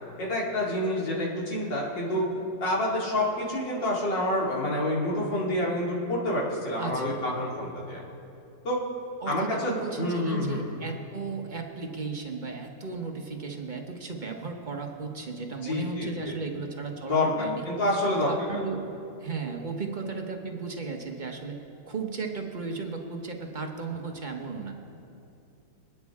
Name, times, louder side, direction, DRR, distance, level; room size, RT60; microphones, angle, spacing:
voice 1, 0.2-2.2 2.6-8.0 8.6-8.8 9.2-9.7 10.0-10.7 15.6-16.4 17.1-18.5, left 1 dB, 80° left, -4 dB, 3.2 m, -28 dB
voice 2, 6.8-7.3 9.2-17.7 18.1-18.9 19.2-21.6 21.8-24.7, right 4 dB, 30° right, 3 dB, 1.0 m, -35 dB
25.5 x 9.7 x 3.6 m, 2.7 s
omnidirectional pair, 1.9 m